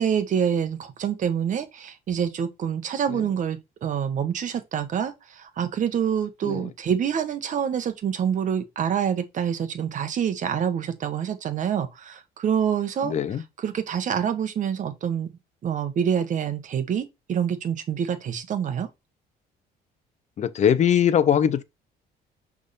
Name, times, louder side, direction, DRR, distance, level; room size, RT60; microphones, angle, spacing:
voice 1, 0.0-13.1 13.6-15.3 15.6-18.9, right 8 dB, 50° right, 1.2 m, -26 dB
voice 2, 13.0-13.4 20.4-21.6, left 9 dB, 45° left, 0.7 m, -21 dB
6.3 x 3.6 x 4.2 m
cardioid pair, 110°, 17 cm